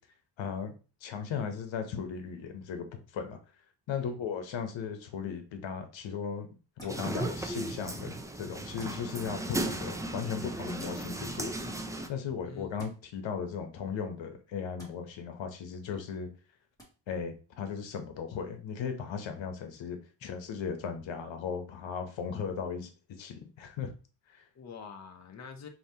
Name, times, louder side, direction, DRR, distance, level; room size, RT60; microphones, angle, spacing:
voice 1, 0.4-0.7 1.0-3.4 3.9-6.5 6.8-11.5 12.1-16.3 17.1-23.9 24.3-24.5, left 6 dB, 80° left, 7 dB, 0.9 m, -37 dB
sound 1, 6.8-7.0 8.8-9.0 10.8-11.0 12.8-12.9 14.8-14.9 16.8-16.9, right 1 dB, 10° left, 2.0 m, -50 dB
sound 2, 6.9-12.1, right 2 dB, 10° right, 0.3 m, -36 dB
voice 2, 12.4-12.9 15.9-16.0 24.5-25.7, left 5 dB, 40° left, 4 dB, 0.7 m, -46 dB
5.1 x 2.8 x 2.7 m, 0.34 s
cardioid pair, 120°, 45 cm